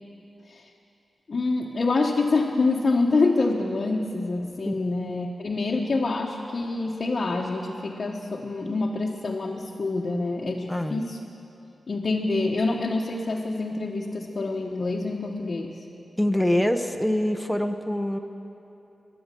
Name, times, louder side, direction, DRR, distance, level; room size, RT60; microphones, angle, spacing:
voice 1, 1.3-11.2 11.9-15.9, left 3 dB, 45° left, -2 dB, 1.0 m, -26 dB
voice 2, 10.7-11.0 16.2-18.2, left 1 dB, 5° left, 5 dB, 0.7 m, -24 dB
17.0 x 11.0 x 6.8 m, 2.9 s
wide cardioid pair, 120°, 0 cm